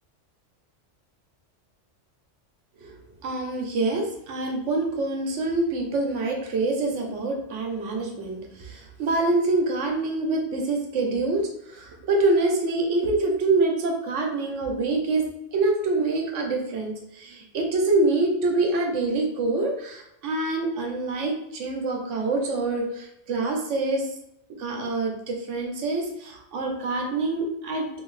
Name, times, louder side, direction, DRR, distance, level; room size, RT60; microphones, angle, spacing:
voice 1, 2.8-15.3 15.5-24.1 24.6-28.0, right 2 dB, 80° right, 2 dB, 1.1 m, -26 dB
3.1 x 2.6 x 3.1 m, 0.80 s
omnidirectional pair, 1.2 m